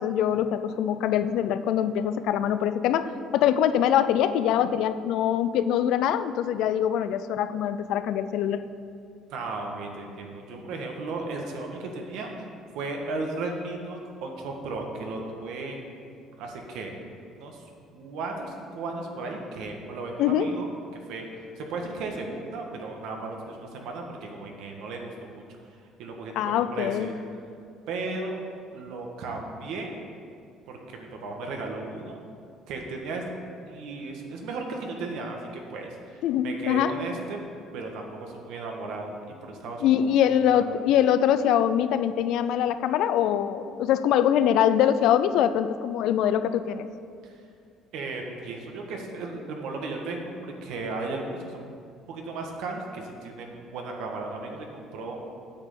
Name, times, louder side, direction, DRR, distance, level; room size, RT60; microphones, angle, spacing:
voice 1, 0.0-8.7 20.2-20.5 26.4-27.1 36.2-36.9 39.8-46.9, left 10 dB, 70° left, 12 dB, 0.4 m, -23 dB
voice 2, 9.3-12.3 12.7-15.8 16.4-16.9 17.3-17.6 17.9-20.7 21.1-25.4 26.0-27.1 27.9-28.4 28.7-30.0 30.7-32.2 32.7-33.2 33.7-37.4 37.7-40.0 40.5-40.6 47.2-47.3 47.9-51.8 52.1-55.3, right 3 dB, 75° right, 2 dB, 1.6 m, -35 dB
9.1 x 5.5 x 7.7 m, 2.3 s
cardioid pair, 145°, 0 cm